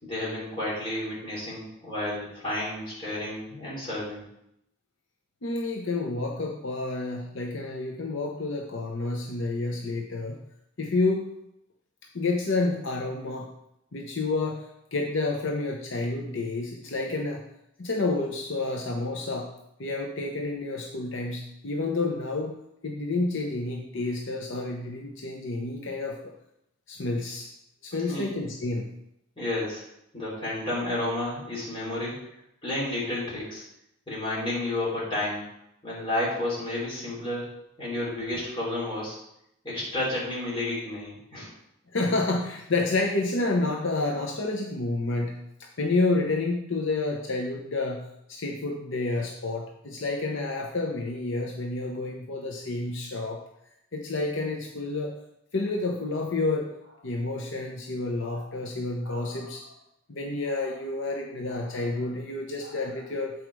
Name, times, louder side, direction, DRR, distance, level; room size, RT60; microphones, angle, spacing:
voice 1, 0.0-4.2 27.9-28.3 29.4-29.8 30.1-32.1 32.6-33.6 34.1-35.5 35.8-37.5 37.8-39.2 39.6-41.5, left 1 dB, 25° left, -7 dB, 3.2 m, -31 dB
voice 2, 5.4-10.4 10.8-11.3 12.1-13.5 13.9-17.4 17.8-19.5 19.8-22.5 22.8-26.2 26.9-27.5 27.8-28.9 41.9-45.4 45.8-53.4 53.9-55.1 55.5-59.7 60.1-63.3, left 2 dB, 65° left, 0 dB, 0.8 m, -29 dB
8.0 x 4.7 x 4.7 m, 0.80 s
head